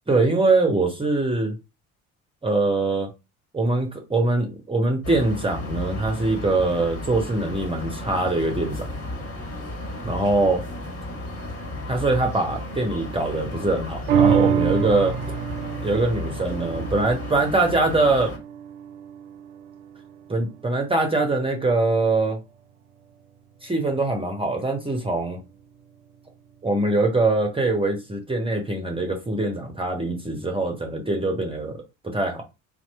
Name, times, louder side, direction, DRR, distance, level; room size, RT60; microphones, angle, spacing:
voice 1, 0.1-1.5 2.4-3.1 3.5-8.9 10.0-10.6 11.9-15.2 15.8-18.3 20.3-22.4 23.6-25.4 26.6-31.8 32.0-32.4, right 2 dB, 10° right, 0.9 m, -23 dB
sound 1, 5.0-18.4, left 1 dB, 30° left, 1.8 m, -34 dB
sound 2, 14.1-20.7 21.2-21.3, right 8 dB, 65° right, 0.5 m, -26 dB
2.9 x 2.3 x 4.2 m
figure-of-eight pair, 55°, 43 cm